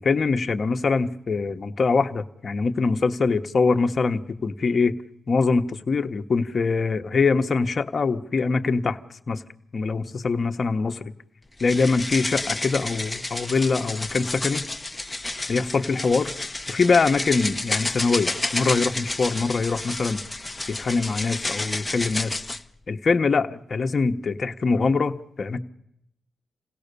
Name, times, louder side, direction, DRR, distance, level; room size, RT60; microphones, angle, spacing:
voice 1, 0.0-4.9 5.3-9.0 9.3-9.4 9.7-11.1 11.6-14.6 15.5-16.3 16.7-20.2 20.7-22.4 22.9-25.6, left 4 dB, 45° left, 7 dB, 1.1 m, -23 dB
sound 1, 11.6-22.6, left 2 dB, 15° left, 0.9 m, -30 dB
28.0 x 16.5 x 6.9 m, 0.80 s
cardioid pair, 80°, 0 cm